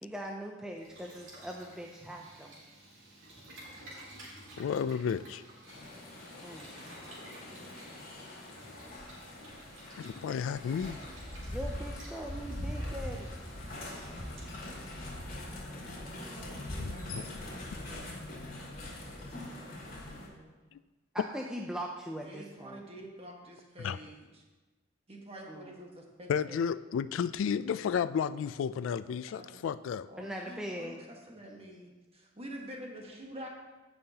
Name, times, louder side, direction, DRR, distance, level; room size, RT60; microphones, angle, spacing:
voice 1, 0.0-2.5 6.4-7.1 11.5-13.3 18.8-19.0 21.1-22.9 25.5-25.7 30.2-31.0, equal, 5° right, 0 dB, 0.5 m, -41 dB
Boiling, 0.7-15.3, right 1 dB, 80° right, 2.6 m, -53 dB
voice 2, 4.6-5.4 10.0-11.0 16.8-17.2 20.7-20.8 23.8-24.0 26.3-30.1, left 7 dB, 80° left, 15 dB, 0.3 m, -32 dB
sound 1, 5.7-20.3, left 1 dB, 50° left, 2.5 m, -42 dB
voice 3, 15.9-18.2 18.8-20.7 22.2-24.4 25.1-26.6 29.3-29.7 30.1-33.5, right 1 dB, 30° right, 0 dB, 1.4 m, -48 dB
15.5 x 5.6 x 2.8 m, 1.3 s
head